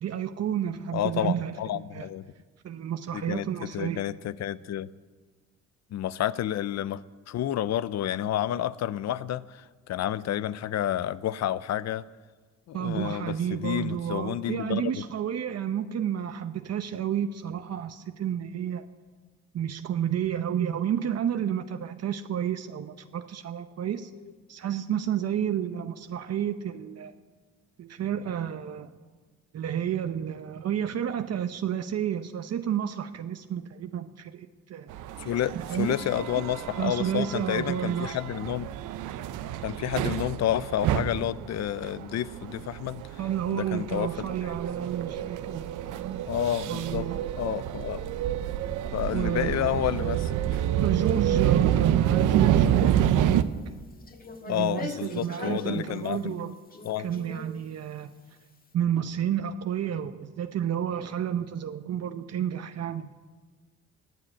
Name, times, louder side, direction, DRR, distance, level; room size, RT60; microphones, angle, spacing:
voice 1, 0.0-1.6 1.9-2.1 2.6-4.0 12.7-18.8 19.5-24.1 24.5-27.1 27.8-28.9 29.5-34.9 35.5-36.0 36.4-36.5 36.8-38.2 43.2-46.2 46.7-47.3 49.1-49.5 50.8-53.8 54.5-56.5 57.0-58.1 58.7-63.1, right 9 dB, 55° right, 8 dB, 0.8 m, -31 dB
voice 2, 0.9-2.2 3.1-4.9 5.9-12.0 12.7-15.0 24.2-24.3 35.2-38.7 39.6-43.0 43.5-44.1 44.4-44.5 46.3-47.1 47.4-48.1 48.9-50.6 54.5-56.4 56.8-57.1, left 11 dB, 60° left, 18 dB, 0.6 m, -30 dB
sound 1, 34.9-53.4, right 11 dB, 85° right, 0.8 m, -28 dB
sound 2, 52.7-53.3 53.9-56.2 56.7-57.6, left 3 dB, 30° left, 1.7 m, -40 dB
19.5 x 7.7 x 8.8 m, 1.4 s
cardioid pair, 90°, 30 cm